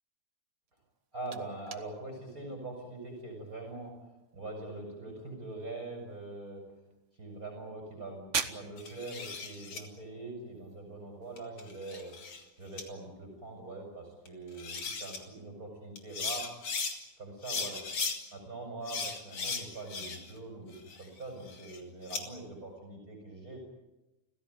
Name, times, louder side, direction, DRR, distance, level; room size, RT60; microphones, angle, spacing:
sound 1, 0.7-11.4, right 6 dB, 65° right, 0.7 m, -45 dB
voice 1, 1.1-4.0 4.3-6.6 7.1-12.2 12.6-16.5 17.2-17.8 18.3-23.6, right 2 dB, 25° right, 1 dB, 5.6 m, -43 dB
sound 2, 8.8-9.8 11.4-12.4 12.8-12.9 14.3-14.4 14.6-15.2 16.0-17.0 17.4-18.2 18.9-20.4 20.7-22.2, left 5 dB, 50° left, 3.6 m, -37 dB
30.0 x 16.0 x 9.3 m, 1.0 s
omnidirectional pair, 3.4 m